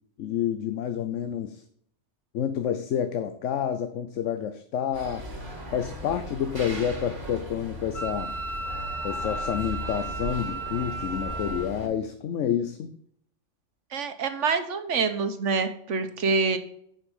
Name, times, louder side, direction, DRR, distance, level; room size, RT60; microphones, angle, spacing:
voice 1, 0.2-1.6 2.3-5.3 5.7-8.3 9.0-12.9, left 9 dB, 85° left, 9 dB, 1.0 m, -29 dB
sound 1, 4.9-11.9, equal, 60° right, 2.6 m, -38 dB
Wind instrument woodwind instrument, 7.9-11.7, right 2 dB, 30° left, 0.8 m, -34 dB
voice 2, 13.9-16.6, right 4 dB, 80° right, 9 dB, 1.4 m, -26 dB
10.0 x 5.5 x 5.4 m, 0.68 s
omnidirectional pair, 1.2 m